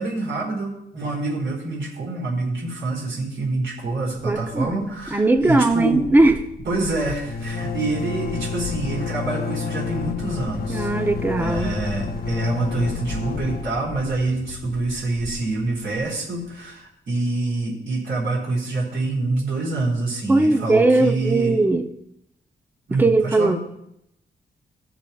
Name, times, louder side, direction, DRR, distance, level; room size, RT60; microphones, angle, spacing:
voice 1, 0.0-6.1 6.6-10.9 11.4-21.6 22.9-23.6, right 2 dB, 85° right, -9 dB, 3.9 m, -26 dB
voice 2, 4.2-6.4 10.7-11.8 20.3-21.9 22.9-23.6, right 2 dB, 10° right, 6 dB, 0.6 m, -19 dB
sound 1, 4.3-4.7 5.0-5.1 5.4-16.0, left 5 dB, 50° left, 0.9 m, -30 dB
18.5 x 7.3 x 2.3 m, 0.80 s
wide cardioid pair, 150°, 20 cm